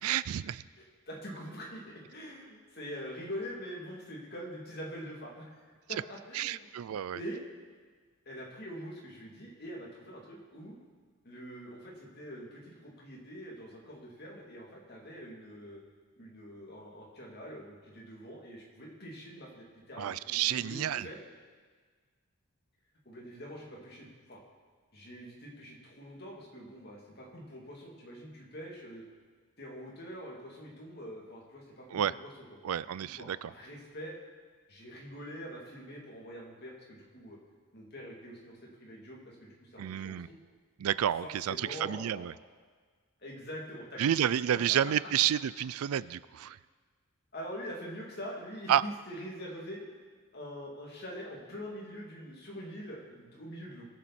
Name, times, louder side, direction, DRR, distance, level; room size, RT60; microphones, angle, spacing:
voice 1, 0.0-0.6 6.3-7.2 20.0-21.1 31.9-32.1 32.6-33.5 39.8-40.3 40.8-42.3 44.0-46.6 48.7-48.8, right 10 dB, 85° right, 18 dB, 0.4 m, -30 dB
voice 2, 0.8-5.6 5.9-6.7 7.1-7.5 8.2-10.7 11.2-15.8 16.2-21.2 23.0-24.4 24.9-29.0 29.6-34.2 34.7-37.4 37.7-40.2 41.2-42.3 43.2-44.3 44.8-44.9 47.3-49.9 50.3-53.9, equal, 45° left, -3 dB, 2.8 m, -44 dB
21.0 x 7.4 x 4.3 m, 1.5 s
head